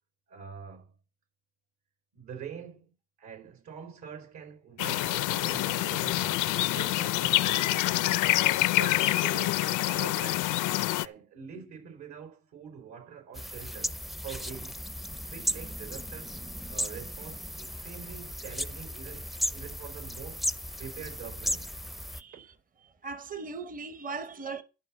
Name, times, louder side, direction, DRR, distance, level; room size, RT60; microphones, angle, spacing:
voice 1, 0.3-0.9 2.1-2.9 3.2-10.5 10.9-14.8 15.2-16.3 16.7-20.5 20.8-21.7 22.3-22.5, right 7 dB, 70° right, 4.8 m, -45 dB
sound 1, 4.8-11.1, left 16 dB, 85° left, 0.6 m, -26 dB
sound 2, 13.3-22.2, equal, ahead, 0.5 m, -36 dB
voice 2, 22.1-22.5 22.8-24.6, right 4 dB, 30° right, 0.9 m, -39 dB
12.5 x 5.5 x 7.5 m
cardioid pair, 90°, 30 cm